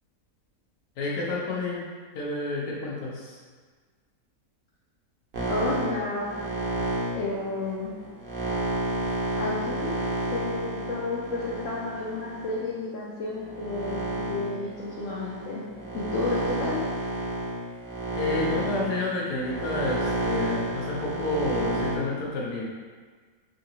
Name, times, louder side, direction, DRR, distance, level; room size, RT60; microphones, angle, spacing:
voice 1, 1.0-1.8 2.1-3.4 18.1-22.6, left 2 dB, 85° left, -3 dB, 1.3 m, -30 dB
sound 1, 5.3-12.7 13.3-21.9, right 1 dB, 65° right, 1.1 m, -30 dB
voice 2, 5.5-6.3 7.1-7.9 9.4-9.9 10.3-15.6 15.9-16.8, left 3 dB, 70° left, -7 dB, 0.8 m, -31 dB
3.6 x 2.8 x 2.7 m, 1.5 s
omnidirectional pair, 1.7 m